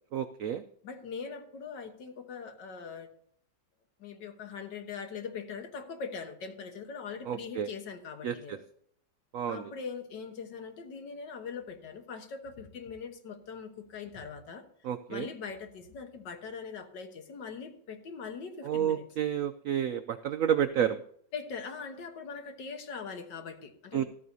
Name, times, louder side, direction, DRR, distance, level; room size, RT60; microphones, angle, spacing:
voice 1, 0.1-0.6 7.3-7.7 8.2-8.6 9.3-9.6 14.8-15.3 18.6-21.0 23.9-24.0, right 9 dB, 85° right, 9 dB, 0.7 m, -30 dB
voice 2, 0.8-3.1 4.0-8.6 9.5-14.6 15.1-19.1 21.3-24.0, left 5 dB, 70° left, 6 dB, 1.8 m, -41 dB
14.0 x 13.5 x 2.7 m, 0.65 s
omnidirectional pair, 2.0 m